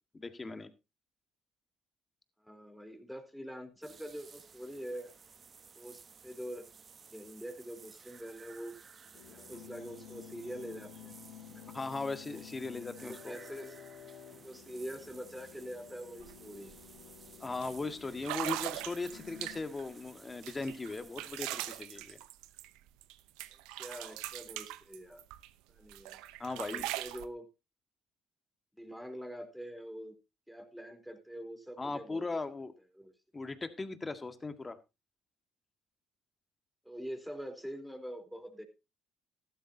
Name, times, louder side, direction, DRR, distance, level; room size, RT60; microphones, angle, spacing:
voice 1, 0.1-0.7 11.7-13.4 17.4-22.2 26.4-26.9 31.8-32.7 33.3-34.8, left 3 dB, 25° left, 9 dB, 1.8 m, -38 dB
voice 2, 2.4-5.1 5.8-6.7 7.1-8.7 9.1-11.2 11.5-11.7 13.0-13.8 14.4-16.8 23.8-25.2 25.7-26.2 26.6-27.5 28.8-30.2 30.5-32.2 33.0-33.1 36.8-38.6, equal, ahead, 5 dB, 3.9 m, -45 dB
sound 1, 3.8-21.8, right 6 dB, 45° right, 1.1 m, -56 dB
sound 2, 9.1-19.6, left 9 dB, 80° left, 2.3 m, -52 dB
sound 3, 16.2-16.3 16.7-17.0 17.6-17.7 18.2-19.8 20.4-23.1 23.4-25.5 25.9-27.3, right 16 dB, 85° right, 0.7 m, -40 dB
14.5 x 12.0 x 2.8 m, 0.26 s
supercardioid pair, 65°, 0 cm